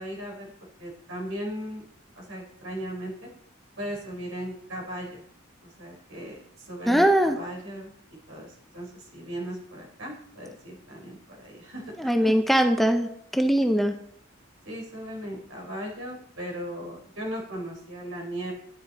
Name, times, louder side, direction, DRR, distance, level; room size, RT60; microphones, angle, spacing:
voice 1, 0.0-1.9 2.2-3.3 3.8-5.2 5.6-7.9 8.3-12.2 14.6-18.5, equal, 80° right, -1 dB, 4.1 m, -37 dB
voice 2, 6.9-7.4 12.0-13.9, equal, ahead, 5 dB, 0.6 m, -21 dB
10.5 x 10.0 x 4.1 m, 0.70 s
head